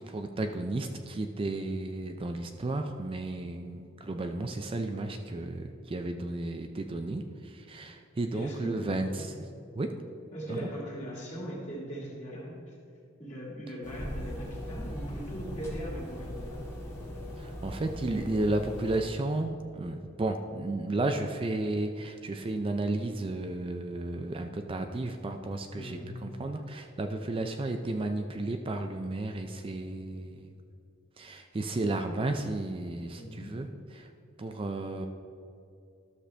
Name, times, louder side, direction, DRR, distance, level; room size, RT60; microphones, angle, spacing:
voice 1, 0.0-9.3 9.8-9.9 10.5-10.7 17.4-30.5 31.2-33.7 33.9-34.1 34.4-35.1, right 2 dB, 25° right, 5 dB, 0.4 m, -33 dB
voice 2, 8.3-9.2 10.3-12.7 13.2-16.6 25.7-26.1 33.1-33.5, equal, 35° left, -4 dB, 2.2 m, -40 dB
sound 1, 13.8-19.0, equal, 15° left, 1.5 m, -39 dB
12.5 x 6.6 x 3.3 m, 2.6 s
head